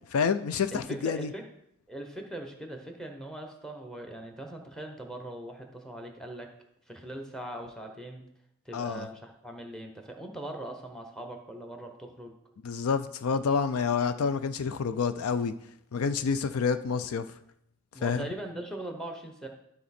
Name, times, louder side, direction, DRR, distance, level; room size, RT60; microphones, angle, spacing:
voice 1, 0.1-1.3 8.7-9.1 12.6-15.5 15.9-17.3 18.0-18.2, left 5 dB, 75° left, 0.4 m, -28 dB
voice 2, 0.7-1.5 1.9-6.5 6.9-8.2 8.6-12.3 17.9-19.5, right 1 dB, 5° left, 1.0 m, -40 dB
12.0 x 4.2 x 4.2 m
head